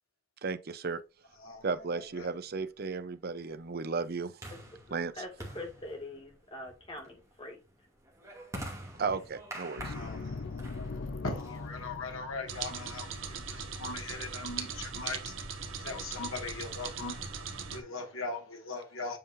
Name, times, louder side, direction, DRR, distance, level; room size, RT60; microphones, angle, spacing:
voice 1, 0.4-1.0 1.6-4.4 4.9-5.1 9.0-9.9, right 4 dB, 50° right, 0.6 m, -34 dB
sound 1, 1.7-12.1, right 1 dB, 15° right, 2.3 m, -48 dB
voice 2, 4.9-7.6, left 1 dB, 25° left, 2.1 m, -44 dB
sound 2, 9.8-14.8, left 3 dB, 60° left, 0.6 m, -42 dB
voice 3, 9.9-10.4 11.2-15.3 15.8-17.3 17.7-19.2, left 3 dB, 75° left, 1.9 m, -39 dB
sound 3, 12.5-17.8, right 6 dB, 65° right, 1.3 m, -39 dB
7.7 x 5.5 x 2.6 m
head